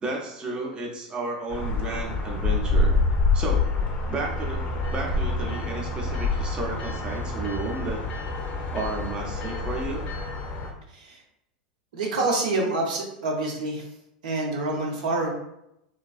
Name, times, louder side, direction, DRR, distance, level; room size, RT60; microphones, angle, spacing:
voice 1, 0.0-3.0 3.3-8.0 8.7-10.1, right 3 dB, 20° right, -1 dB, 0.5 m, -33 dB
sound 1, 1.5-10.7, left 3 dB, 35° left, 0.5 m, -27 dB
voice 2, 11.9-13.8 14.2-15.3, right 2 dB, 70° right, -1 dB, 0.6 m, -27 dB
2.4 x 2.3 x 2.3 m, 0.82 s
hypercardioid pair, 95°, 4 cm